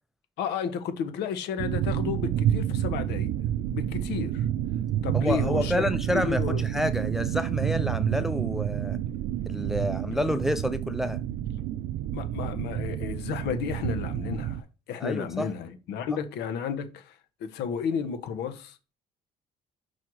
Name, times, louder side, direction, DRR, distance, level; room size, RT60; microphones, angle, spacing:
voice 1, 0.4-3.3 3.7-4.5 5.0-5.9 6.1-6.6 12.1-18.9, left 7 dB, 80° left, 1.2 m, -32 dB
sound 1, 1.6-14.6, right 11 dB, 80° right, 0.5 m, -29 dB
voice 2, 5.1-9.0 9.5-11.2 15.0-15.5 16.1-16.2, equal, ahead, 0.4 m, -29 dB
6.1 x 4.5 x 4.7 m
cardioid pair, 110°, 17 cm